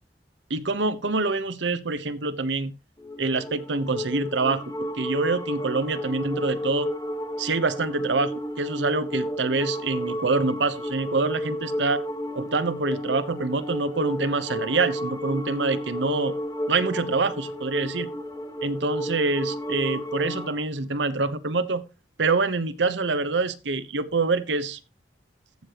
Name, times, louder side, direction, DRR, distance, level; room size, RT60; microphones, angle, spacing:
voice 1, 0.5-2.7 3.2-4.6 5.0-6.9 7.4-12.0 12.3-16.3 16.7-18.1 18.6-21.8 22.2-24.8, right 3 dB, 90° right, 1.0 m, -26 dB
sound 1, 3.0-20.6, equal, 20° left, 1.5 m, -32 dB
14.5 x 6.7 x 3.0 m
head